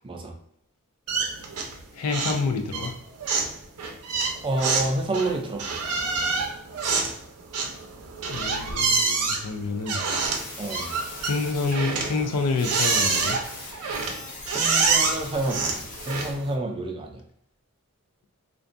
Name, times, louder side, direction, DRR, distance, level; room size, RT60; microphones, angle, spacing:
sound 1, 1.1-1.8 2.1-2.4 2.7-16.5, right 4 dB, 90° right, 0.5 m, -27 dB
voice 1, 1.9-2.9 8.2-10.0 11.2-13.4, left 4 dB, 90° left, 5 dB, 0.4 m, -28 dB
voice 2, 4.4-5.8 10.6-10.9 14.5-17.2, right 2 dB, 25° right, 2 dB, 0.4 m, -29 dB
sound 2, 10.1-16.3, left 2 dB, 35° left, 0.7 m, -41 dB
2.5 x 2.2 x 2.5 m, 0.73 s
head